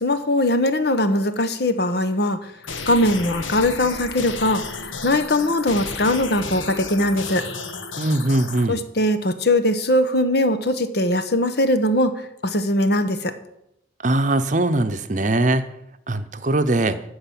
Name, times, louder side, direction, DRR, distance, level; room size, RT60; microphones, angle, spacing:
voice 1, 0.0-2.5 2.9-4.6 5.0-7.5 8.7-13.3, left 1 dB, 55° left, 10 dB, 1.0 m, -21 dB
sound 1, 2.6-8.6, left 4 dB, 90° left, 1.3 m, -33 dB
voice 2, 8.0-8.8 14.0-15.7 16.1-17.0, right 2 dB, 40° right, 9 dB, 0.8 m, -21 dB
14.0 x 4.9 x 8.7 m, 0.83 s
head